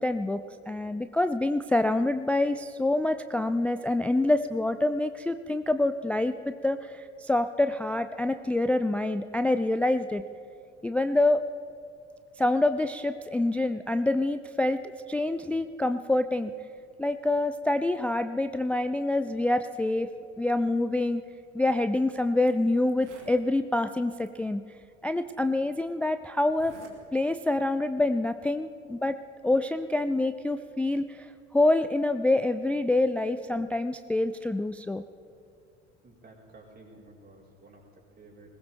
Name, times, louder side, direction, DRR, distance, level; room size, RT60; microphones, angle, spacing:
voice 1, 0.0-10.2 10.8-11.4 12.4-14.8 15.1-16.5 17.0-20.1 20.4-21.2 21.5-24.6 25.0-26.8 27.1-29.2 29.4-35.0, left 2 dB, 5° left, 10 dB, 0.3 m, -26 dB
Zipper (clothing), 21.9-22.0 22.5-22.6 22.8-23.4 24.2-24.3 25.3-25.4 26.5-27.0 27.3-27.6, right 5 dB, 75° right, 2.2 m, -52 dB
voice 2, 36.0-38.6, right 2 dB, 25° right, -3 dB, 4.6 m, -53 dB
21.0 x 19.5 x 3.5 m, 2.5 s
figure-of-eight pair, 65°, 35 cm